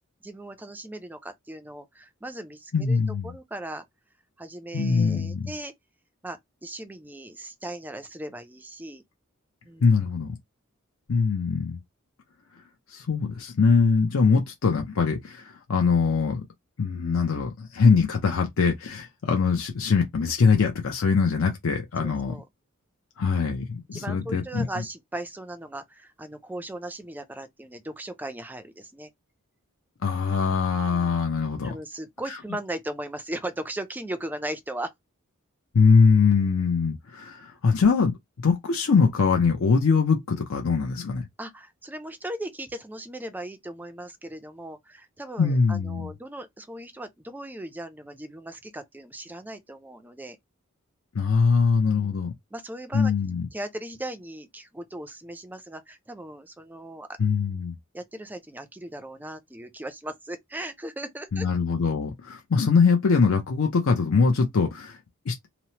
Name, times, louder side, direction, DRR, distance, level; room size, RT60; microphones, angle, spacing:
voice 1, 0.2-3.8 4.4-5.7 6.2-9.0 9.6-9.8 22.0-22.4 23.9-29.1 31.6-34.9 41.4-50.4 51.8-52.2 52.5-53.1 53.5-57.1 57.9-61.5, right 1 dB, 10° right, 0.3 m, -38 dB
voice 2, 2.7-3.3 4.7-5.5 9.8-10.4 11.1-11.8 12.9-16.4 16.8-22.4 23.2-24.6 30.0-31.7 35.7-38.2 38.4-41.3 45.4-46.1 51.1-52.3 52.9-53.5 57.2-57.7 61.3-65.0 65.3-65.4, left 5 dB, 65° left, 0.5 m, -22 dB
2.9 x 2.0 x 2.8 m
head